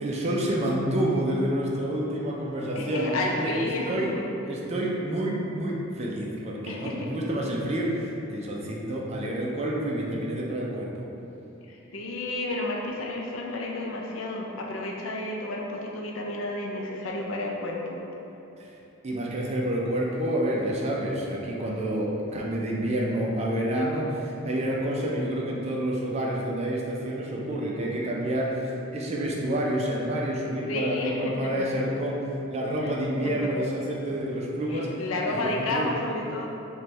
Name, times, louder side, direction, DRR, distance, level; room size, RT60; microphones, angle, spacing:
voice 1, 0.0-11.1 18.6-18.8 19.0-35.0 35.3-35.9, right 1 dB, 30° right, -3 dB, 0.4 m, -28 dB
voice 2, 2.8-4.1 5.0-5.1 6.7-7.1 11.7-18.0 30.7-31.5 32.8-32.9 34.7-36.5, left 2 dB, 80° left, -1 dB, 0.5 m, -31 dB
3.1 x 2.2 x 4.2 m, 2.9 s
head